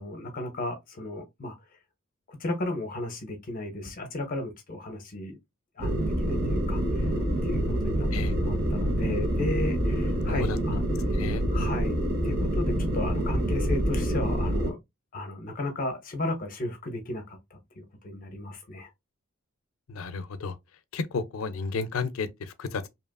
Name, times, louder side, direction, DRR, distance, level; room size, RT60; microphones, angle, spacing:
voice 1, 0.0-1.6 2.3-5.4 5.8-7.1 7.4-8.1 8.4-10.8 11.5-12.0 12.2-14.8 15.1-17.4 17.8-18.9, left 2 dB, 45° left, 0.7 m, -34 dB
sound 1, 5.8-14.7, equal, 50° right, 0.8 m, -26 dB
voice 2, 11.1-11.7 19.9-20.5 20.9-22.9, left 4 dB, 85° left, 0.4 m, -32 dB
2.8 x 2.4 x 2.2 m
head